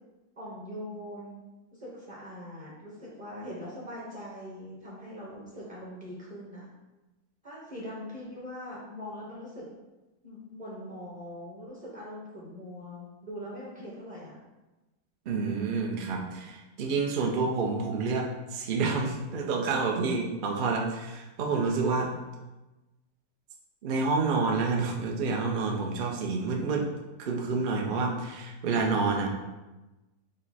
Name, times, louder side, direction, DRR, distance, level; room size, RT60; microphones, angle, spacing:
voice 1, 0.4-1.4 1.7-6.7 7.4-9.7 10.2-14.4, equal, 30° right, -6 dB, 0.8 m, -42 dB
voice 2, 15.3-22.1 23.8-26.9 27.2-29.3, right 4 dB, 70° right, 1 dB, 0.4 m, -28 dB
5.2 x 2.1 x 4.1 m, 1.1 s
omnidirectional pair, 1.6 m